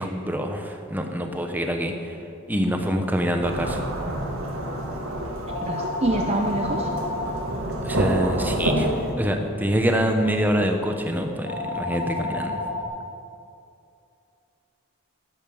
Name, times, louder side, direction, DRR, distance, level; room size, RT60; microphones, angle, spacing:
voice 1, 0.0-2.1 2.5-3.8 7.8-12.6, equal, 10° right, 4 dB, 1.0 m, -25 dB
sound 1, 2.5-12.8, left 2 dB, 50° left, 3.1 m, -35 dB
Thunderstorm / Rain, 3.4-9.1, right 1 dB, 75° right, 2.3 m, -28 dB
voice 2, 5.6-6.9, right 2 dB, 30° right, 3 dB, 0.6 m, -26 dB
11.0 x 10.5 x 7.7 m, 2.6 s
head